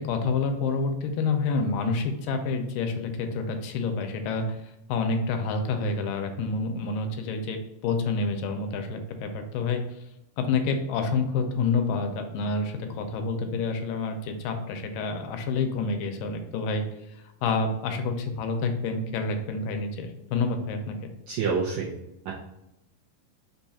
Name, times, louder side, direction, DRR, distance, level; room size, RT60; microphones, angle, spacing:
voice 1, 0.0-4.5 4.9-9.8 10.4-16.8 17.4-21.1, left 4 dB, 85° left, 5 dB, 2.3 m, -28 dB
voice 2, 21.3-21.9 22.3-22.4, right 5 dB, 80° right, -4 dB, 1.6 m, -27 dB
5.4 x 2.3 x 4.0 m, 0.89 s
omnidirectional pair, 3.9 m